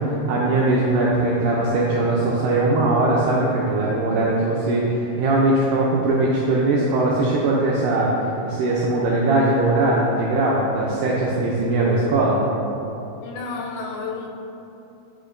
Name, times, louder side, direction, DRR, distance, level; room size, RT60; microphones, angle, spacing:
voice 1, 0.0-8.1 8.4-12.4, right 2 dB, 80° right, -4 dB, 2.0 m, -20 dB
voice 2, 13.2-14.3, left 4 dB, 80° left, 0 dB, 2.5 m, -31 dB
8.2 x 5.6 x 2.5 m, 2.9 s
omnidirectional pair, 4.5 m